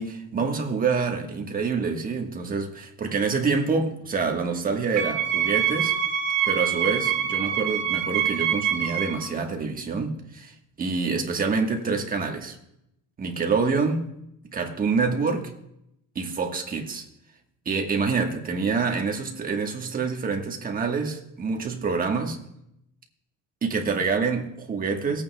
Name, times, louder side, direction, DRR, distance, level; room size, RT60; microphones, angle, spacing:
voice 1, 0.0-5.9 6.4-10.5 10.8-12.6 13.2-14.1 14.5-15.5 16.1-17.1 17.6-22.4 23.6-25.2, right 4 dB, 25° right, 1.3 m, -26 dB
Wind instrument woodwind instrument, 5.0-9.2, right 9 dB, 80° right, 3.0 m, -25 dB
19.0 x 8.6 x 2.2 m
cardioid pair, 140°, 33 cm